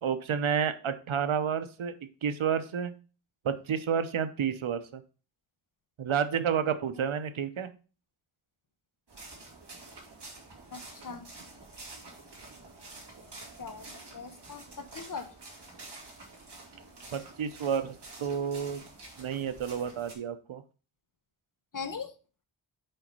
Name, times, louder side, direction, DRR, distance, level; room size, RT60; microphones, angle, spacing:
voice 1, 0.0-1.9 2.2-2.9 3.4-5.0 6.0-7.7 17.1-18.8 19.2-20.6, right 7 dB, 90° right, 11 dB, 0.9 m, -30 dB
sound 1, 9.1-20.1, right 2 dB, 55° right, 2.4 m, -48 dB
voice 2, 10.7-11.2 13.6-15.3 21.7-22.1, left 5 dB, 45° left, 9 dB, 1.0 m, -40 dB
5.6 x 5.0 x 5.4 m, 0.35 s
wide cardioid pair, 105°, 47 cm